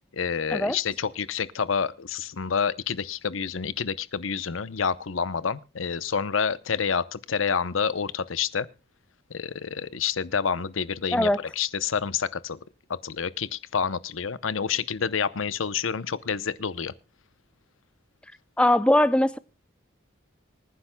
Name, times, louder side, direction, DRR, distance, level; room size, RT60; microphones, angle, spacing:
voice 1, 0.1-8.7 9.3-11.3 11.6-12.6 12.9-16.9, left 6 dB, 85° left, 0.7 m, -28 dB
voice 2, 18.6-19.4, left 1 dB, 5° left, 0.5 m, -20 dB
25.5 x 10.0 x 2.2 m
head